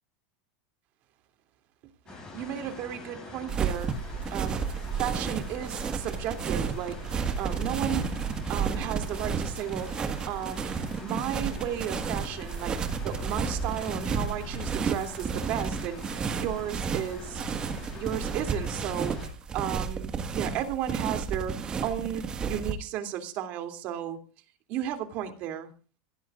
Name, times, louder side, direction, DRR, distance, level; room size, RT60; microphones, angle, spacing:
sound 1, 2.1-19.3, left 3 dB, 20° left, 7.8 m, -43 dB
voice 1, 2.1-3.9 4.3-4.6 5.0-7.0 7.4-8.2 8.5-12.7 13.0-17.4 17.9-19.2 19.5-24.2 24.7-25.7, right 10 dB, 45° right, 2.9 m, -34 dB
sound 2, 3.5-22.7, right 6 dB, 20° right, 1.7 m, -32 dB
26.0 x 16.5 x 2.5 m
supercardioid pair, 150°, 4 cm